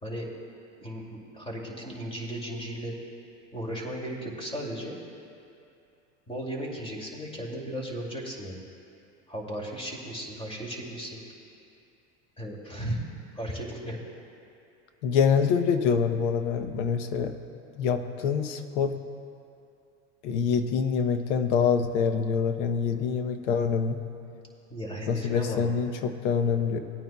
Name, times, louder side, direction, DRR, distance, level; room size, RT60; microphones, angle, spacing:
voice 1, 0.8-3.0 3.5-5.0 6.3-8.6 9.3-11.2 12.4-13.0 13.3-14.0 24.7-25.7, right 1 dB, 15° left, -1 dB, 2.5 m, -35 dB
voice 2, 15.0-17.3 17.8-18.9 20.2-24.0 25.1-26.8, left 6 dB, 75° left, 8 dB, 0.9 m, -25 dB
19.0 x 9.1 x 2.3 m, 2.6 s
hypercardioid pair, 95°, 35 cm